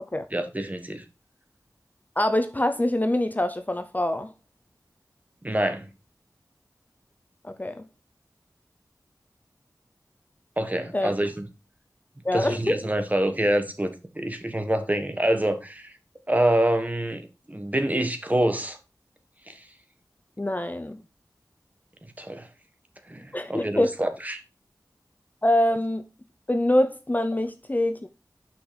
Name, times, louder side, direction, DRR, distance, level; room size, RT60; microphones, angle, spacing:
voice 1, 0.3-1.0 5.4-5.9 10.6-11.5 12.3-15.9 16.3-18.8 19.5-19.6 22.2-22.5 23.1-24.4, right 1 dB, 25° right, 1.3 m, -26 dB
voice 2, 2.2-4.3 7.4-7.9 10.9-11.1 12.2-12.8 20.4-21.0 23.3-23.9 25.4-26.0 26.5-28.1, left 1 dB, 25° left, 0.6 m, -24 dB
6.0 x 5.9 x 4.0 m
wide cardioid pair, 50°, 7 cm